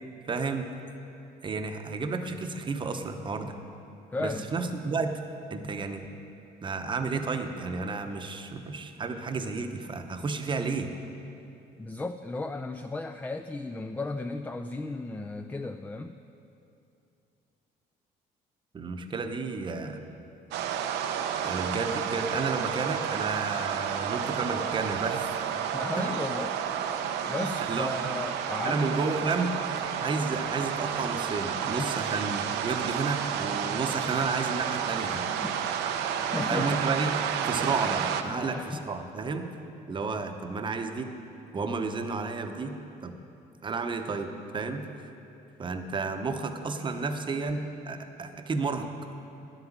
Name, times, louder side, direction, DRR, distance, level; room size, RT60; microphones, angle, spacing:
voice 1, 0.2-0.7 1.4-3.6 4.2-5.2 5.5-6.1 6.6-10.9 18.7-20.0 21.4-25.3 26.0-26.1 27.4-28.1 28.6-29.5 30.0-35.3 36.5-37.1 37.5-39.5 39.9-41.1 41.5-42.8 43.0-43.2 43.6-44.9 45.6-48.9, right 4 dB, 30° right, 6 dB, 0.8 m, -31 dB
voice 2, 4.1-4.5 11.8-16.2 25.7-26.6 27.3-29.1 31.8-32.0 35.4-35.6 36.3-36.8 38.3-38.9, left 2 dB, 10° left, 8 dB, 0.3 m, -35 dB
sound 1, 20.5-38.2, right 8 dB, 85° right, 0.7 m, -31 dB
9.9 x 8.0 x 7.3 m, 2.7 s
cardioid pair, 110°, 17 cm